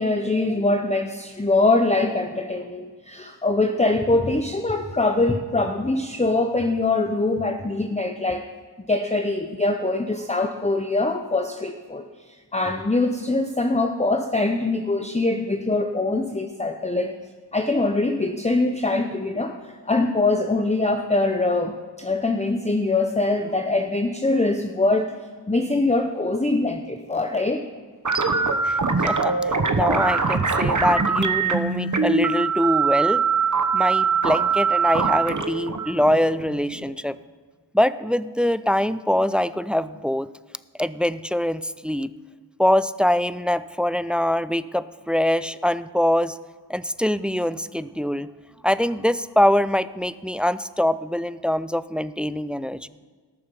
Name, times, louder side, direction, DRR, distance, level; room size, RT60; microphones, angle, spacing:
voice 1, 0.0-8.4 8.9-12.1 12.5-17.1 17.5-25.1 25.5-27.6, left 2 dB, 15° left, 5 dB, 0.7 m, -23 dB
sound 1, 28.0-37.0, right 5 dB, 45° right, 1.0 m, -23 dB
voice 2, 29.0-33.3 33.7-37.1 37.7-40.3 40.8-42.1 42.6-46.4 46.7-48.3 48.6-52.9, left 1 dB, 5° right, 15 dB, 0.3 m, -23 dB
18.0 x 6.9 x 5.4 m, 1.5 s
wide cardioid pair, 45°, 43 cm